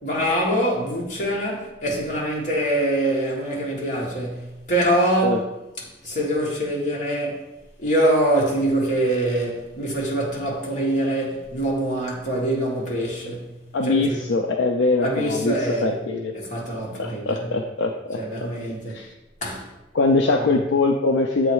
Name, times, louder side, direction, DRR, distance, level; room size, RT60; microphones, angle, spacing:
voice 1, 0.0-5.4 5.8-7.5 7.8-13.5 13.8-14.2 15.0-15.9 16.3-17.5 18.2-19.0 19.4-19.7 20.3-20.6, right 1 dB, 40° left, 1.5 m, -24 dB
voice 2, 13.7-15.5 15.8-16.3 17.0-18.2 18.9-19.1 19.9-21.5, left 3 dB, 65° left, 0.4 m, -22 dB
7.6 x 3.1 x 4.6 m
head